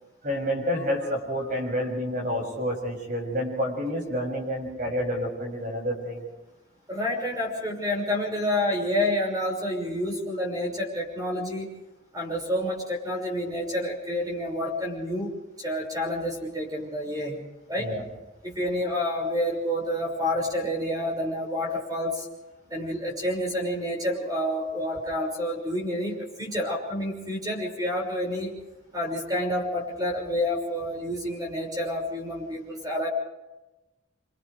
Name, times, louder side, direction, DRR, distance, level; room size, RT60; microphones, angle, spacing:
voice 1, 0.2-6.2 17.8-18.0, equal, 45° right, 1 dB, 7.0 m, -29 dB
voice 2, 6.9-11.7 12.1-17.4 17.7-17.9 18.4-22.3 22.7-28.5 28.9-33.1, left 1 dB, 20° right, 0 dB, 6.1 m, -29 dB
29.5 x 26.5 x 3.4 m, 1.0 s
head